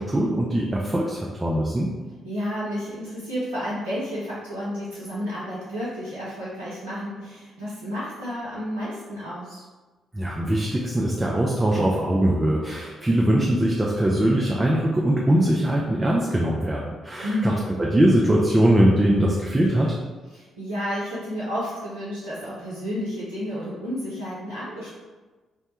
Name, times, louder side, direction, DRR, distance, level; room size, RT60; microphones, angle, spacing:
voice 1, 0.0-1.9 10.1-17.5 17.8-20.0, right 1 dB, 20° right, -3 dB, 0.4 m, -21 dB
voice 2, 2.2-9.6 17.2-17.8 20.3-24.9, equal, 85° right, -11 dB, 0.5 m, -31 dB
2.1 x 2.0 x 2.8 m, 1.3 s
figure-of-eight pair, 40°, 0 cm